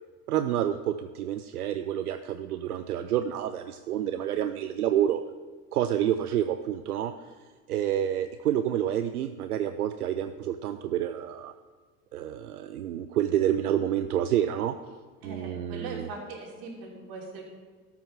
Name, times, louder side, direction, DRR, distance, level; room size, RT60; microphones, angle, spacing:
voice 1, 0.3-5.2 5.7-7.3 7.7-11.5 12.1-14.7 15.2-16.1, right 10 dB, 85° right, 9 dB, 0.6 m, -28 dB
voice 2, 15.2-17.4, right 4 dB, 50° right, -1 dB, 3.1 m, -40 dB
13.0 x 5.8 x 5.8 m, 1.5 s
figure-of-eight pair, 75°, 44 cm